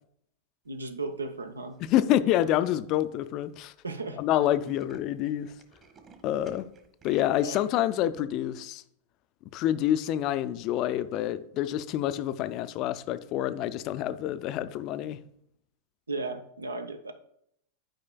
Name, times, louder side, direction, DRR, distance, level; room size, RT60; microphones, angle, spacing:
voice 1, 0.7-1.8 3.8-4.2 7.4-7.6 16.1-17.1, right 3 dB, 75° right, 0.5 m, -35 dB
Tools, 1.7-2.2 2.8-2.9 3.1-3.2 3.4-3.6 3.9-4.0 4.3-7.8, right 5 dB, 30° right, 1.3 m, -55 dB
voice 2, 1.8-3.7 4.2-5.5 6.2-6.7 7.0-8.8 9.5-15.2, left 12 dB, 40° left, 0.4 m, -27 dB
11.5 x 5.0 x 2.2 m
figure-of-eight pair, 90°, 0 cm